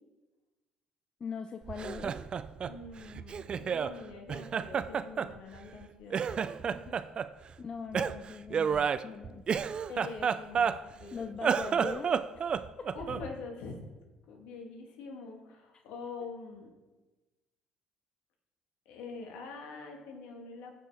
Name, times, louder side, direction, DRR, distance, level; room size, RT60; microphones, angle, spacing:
voice 1, 1.2-2.1 7.6-9.4 11.1-12.2 12.8-13.3, left 5 dB, 35° left, 7 dB, 0.6 m, -41 dB
Laughter, 1.7-3.9 4.3-5.8 6.1-7.3 7.9-11.0 11.3-13.3, right 7 dB, 40° right, 0.4 m, -31 dB
voice 2, 2.6-7.0 8.5-9.0 9.9-11.3 12.9-13.8 14.3-16.7 18.9-20.8, left 4 dB, 70° left, 2 dB, 1.9 m, -45 dB
15.5 x 5.5 x 3.7 m, 1.2 s
hypercardioid pair, 60°, 2 cm